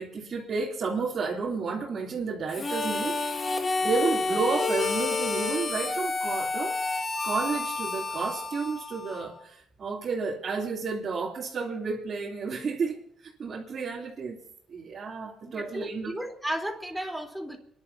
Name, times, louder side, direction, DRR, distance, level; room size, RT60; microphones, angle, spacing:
voice 1, 0.0-6.8 7.2-14.4 14.7-16.1, right 4 dB, 50° right, -4 dB, 3.2 m, -31 dB
Harmonica, 2.5-9.4, left 3 dB, 35° left, 2.0 m, -30 dB
voice 2, 15.4-17.6, equal, 5° right, 3 dB, 3.8 m, -34 dB
30.0 x 11.5 x 2.8 m, 0.74 s
cardioid pair, 90°, 0 cm